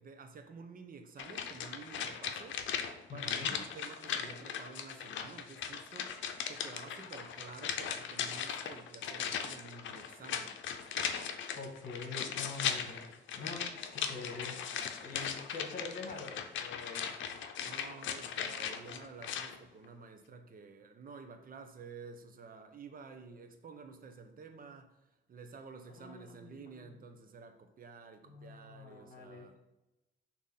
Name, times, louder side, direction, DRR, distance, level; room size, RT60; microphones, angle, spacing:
voice 1, 0.0-2.6 3.1-6.2 6.5-10.6 17.6-29.6, right 4 dB, 45° right, 0.9 m, -51 dB
sound 1, 1.2-19.6 19.8-19.9, left 7 dB, 70° left, 0.7 m, -38 dB
voice 2, 3.1-3.6 11.5-13.0 13.3-14.6 15.0-17.1 25.9-27.0 28.3-29.6, left 4 dB, 50° left, 1.8 m, -45 dB
6.4 x 3.0 x 5.5 m
cardioid pair, 90°, 20 cm